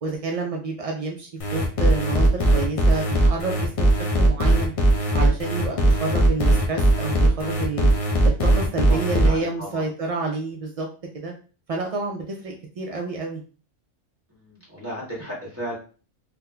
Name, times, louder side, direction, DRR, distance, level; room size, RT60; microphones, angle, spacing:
voice 1, 0.0-4.7 5.1-7.9 8.4-10.9 11.2-11.3 11.7-13.4, right 3 dB, 70° right, 0 dB, 0.3 m, -29 dB
sound 1, 1.4-9.3, right 1 dB, 45° left, 0.4 m, -19 dB
voice 2, 8.9-9.9 14.3-15.7, equal, 10° right, -5 dB, 1.5 m, -34 dB
3.6 x 2.8 x 2.2 m, 0.37 s
omnidirectional pair, 1.3 m